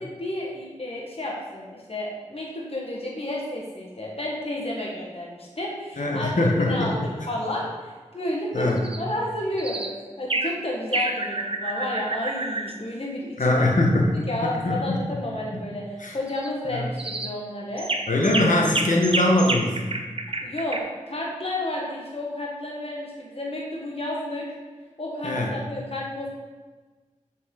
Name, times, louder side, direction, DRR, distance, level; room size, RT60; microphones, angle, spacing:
voice 1, 0.0-7.0 7.3-8.7 9.0-13.7 13.9-17.9 20.4-20.8 21.1-24.5 25.0-26.3, left 1 dB, 45° left, -3 dB, 1.5 m, -31 dB
voice 2, 6.0-7.1 8.5-8.9 13.4-14.1 14.4-15.0 16.0-16.1 16.7-16.9 18.1-19.8 25.2-25.5, left 1 dB, 75° left, -1 dB, 1.3 m, -22 dB
sound 1, 8.8-9.0 9.6-9.9 10.3-10.6 10.9-12.7 16.3-16.5 17.0-17.3 17.8-20.8, right 2 dB, 45° right, 0.7 m, -29 dB
6.7 x 6.1 x 3.8 m, 1.3 s
cardioid pair, 40°, 13 cm